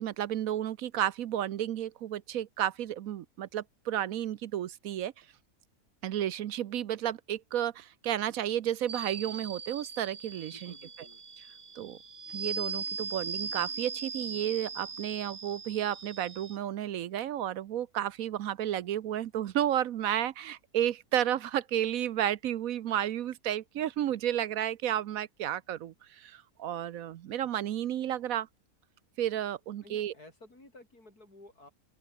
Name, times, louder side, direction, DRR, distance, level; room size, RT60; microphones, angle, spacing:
voice 1, 0.0-5.1 6.0-10.7 11.8-12.0 12.3-28.5 29.2-30.1, right 11 dB, 70° right, 1.1 m, -32 dB
sound 1, 8.9-16.6, right 5 dB, 50° right, 2.2 m, -39 dB
voice 2, 10.5-11.2 29.8-31.7, left 2 dB, 85° left, 8.4 m, -54 dB
open air
omnidirectional pair, 1.6 m